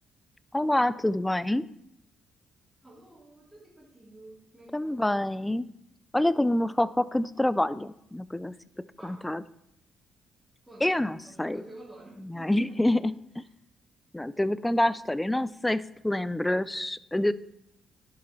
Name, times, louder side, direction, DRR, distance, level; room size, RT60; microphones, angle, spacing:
voice 1, 0.5-1.7 4.7-5.7 6.1-8.5 9.0-9.4 10.8-11.6 12.3-13.1 14.1-17.3, left 1 dB, 10° left, 16 dB, 0.4 m, -26 dB
voice 2, 2.8-5.4 9.0-9.3 10.6-13.0, right 1 dB, 10° right, -7 dB, 3.3 m, -51 dB
11.0 x 7.2 x 3.2 m, 0.79 s
cardioid pair, 90°, 0 cm